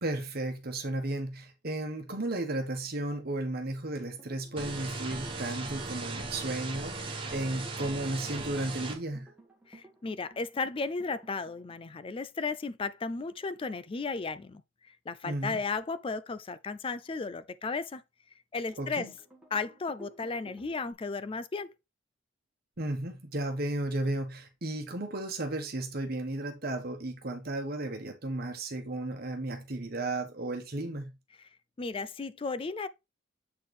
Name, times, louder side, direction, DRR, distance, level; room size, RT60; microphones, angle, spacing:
voice 1, 0.0-9.3 15.2-15.6 18.8-19.1 22.8-31.1, right 2 dB, 50° right, 1.2 m, -34 dB
sound 1, 4.1-12.1 18.7-20.9, right 1 dB, 5° right, 1.5 m, -55 dB
sound 2, 4.6-9.0, right 3 dB, 25° right, 1.4 m, -38 dB
voice 2, 9.7-14.6 15.1-18.0 18.5-19.1 19.5-21.7 31.8-32.9, left 4 dB, 25° left, 0.4 m, -34 dB
7.5 x 4.5 x 3.3 m
head